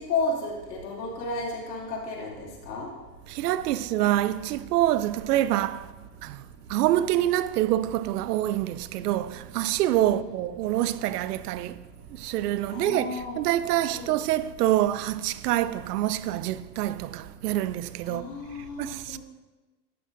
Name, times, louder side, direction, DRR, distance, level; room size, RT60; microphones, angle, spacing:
voice 1, 0.0-2.9 10.1-10.3 12.7-13.4 13.9-14.1 18.0-19.2, left 3 dB, 80° left, 2.6 m, -32 dB
voice 2, 3.3-5.9 6.2-6.4 6.7-11.7 12.2-18.2 18.8-19.2, right 13 dB, 75° right, 0.6 m, -26 dB
11.5 x 7.9 x 2.6 m
supercardioid pair, 135°, 48 cm